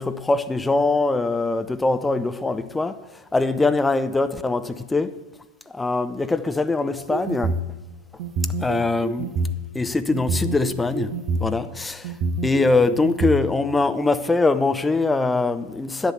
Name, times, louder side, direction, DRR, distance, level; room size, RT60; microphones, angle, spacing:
voice 1, 0.0-3.0 3.3-5.1 5.7-7.6 8.6-9.3 9.7-12.1 12.4-16.1, left 3 dB, 10° left, 0.8 m, -22 dB
sound 1, 7.0-7.7 8.2-9.6 10.1-11.4 12.0-13.3, right 4 dB, 45° right, 1.2 m, -26 dB
11.0 x 10.0 x 8.1 m
figure-of-eight pair, 90°, 0 cm